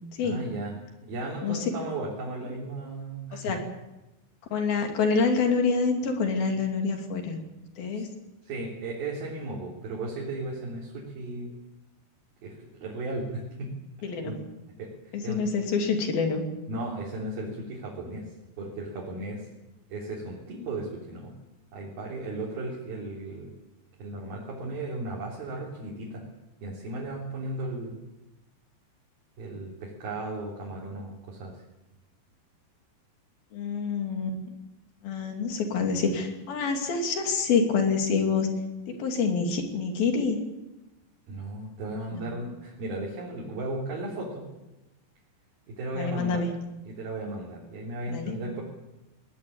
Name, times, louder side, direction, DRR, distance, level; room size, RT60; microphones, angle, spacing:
voice 1, 0.2-0.8 1.1-3.6 7.9-8.0 8.4-11.5 12.4-13.7 14.0-14.4 14.8-15.4 16.7-18.2 18.6-19.4 19.9-21.3 21.7-23.5 24.0-26.2 26.6-28.0 29.4-31.6 41.3-44.5 45.7-46.4 46.9-48.6, right 2 dB, 85° right, -4 dB, 5.5 m, -35 dB
voice 2, 4.5-7.4 7.8-8.1 14.0-14.3 15.1-16.4 33.5-34.4 35.0-38.5 39.0-40.4 42.1-42.3 45.9-46.5 48.1-48.3, left 5 dB, 80° left, 3 dB, 4.8 m, -26 dB
20.5 x 19.0 x 8.8 m, 1.0 s
omnidirectional pair, 4.1 m